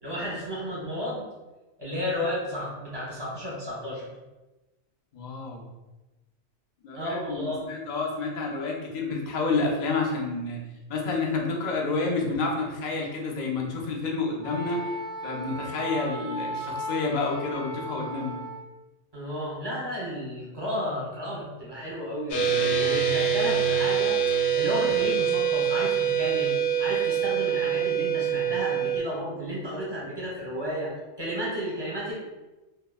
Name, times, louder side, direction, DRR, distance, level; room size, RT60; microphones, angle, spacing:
voice 1, 0.0-1.2 1.8-4.1 7.0-7.6 19.1-30.9 31.2-32.1, equal, 25° right, -6 dB, 0.6 m, -32 dB
voice 2, 5.1-5.6 6.8-10.6 10.9-15.0 15.2-18.4, left 3 dB, 65° left, -1 dB, 0.4 m, -29 dB
Wind instrument woodwind instrument, 14.4-18.7, equal, 25° left, 0.7 m, -36 dB
sound 1, 22.3-29.0, right 7 dB, 85° left, 1.0 m, -25 dB
2.7 x 2.0 x 2.2 m, 1.1 s
omnidirectional pair, 1.3 m